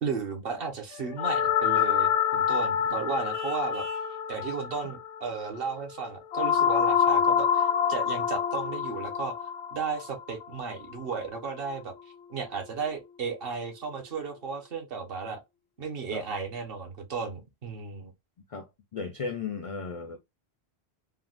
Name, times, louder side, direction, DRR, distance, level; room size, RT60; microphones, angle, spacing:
voice 1, 0.0-3.9 4.3-9.3 9.7-11.9 12.3-15.4 15.8-18.1, right 5 dB, 60° right, 1.1 m, -34 dB
sound 1, 1.2-11.4, left 8 dB, 80° left, 0.8 m, -27 dB
Vehicle horn car horn honking, 3.3-4.2, right 5 dB, 40° right, 0.8 m, -45 dB
voice 2, 18.5-20.2, left 5 dB, 60° left, 0.3 m, -35 dB
3.5 x 2.2 x 2.4 m
omnidirectional pair, 1.1 m